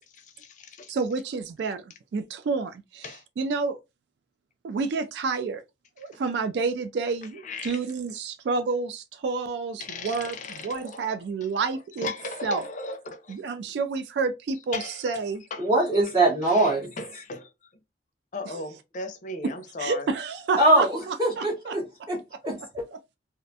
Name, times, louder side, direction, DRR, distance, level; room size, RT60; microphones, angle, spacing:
voice 1, 0.0-0.9 3.0-3.2 7.4-7.8 9.8-11.2 12.0-13.4 14.7-15.0 15.5-15.7 16.0-16.1 16.4-17.5 18.3-20.1 21.4-21.5, left 3 dB, 45° left, 0.5 m, -37 dB
voice 2, 0.9-3.1 3.4-3.8 4.6-5.6 6.0-12.1 12.4-12.6 13.3-15.4 19.8-21.8, right 4 dB, 70° right, 0.3 m, -29 dB
voice 3, 15.6-16.9 20.6-22.8, right 1 dB, 25° right, 0.6 m, -23 dB
2.4 x 2.1 x 2.6 m
head